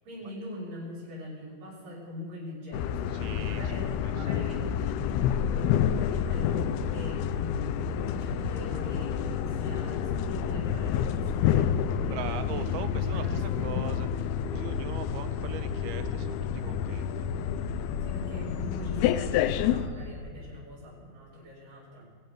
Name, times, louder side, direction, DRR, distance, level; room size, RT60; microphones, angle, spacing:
voice 1, 0.0-4.7 5.3-12.3 12.5-13.7 18.0-22.1, left 1 dB, 55° right, -4 dB, 7.0 m, -42 dB
sound 1, 2.7-19.9, left 10 dB, 80° left, 2.5 m, -29 dB
sound 2, 2.7-20.2, left 1 dB, 60° left, 2.1 m, -39 dB
voice 2, 3.1-4.1 12.1-17.3, right 9 dB, 80° right, 10 dB, 2.5 m, -41 dB
22.0 x 7.9 x 6.8 m, 2.1 s
omnidirectional pair, 4.6 m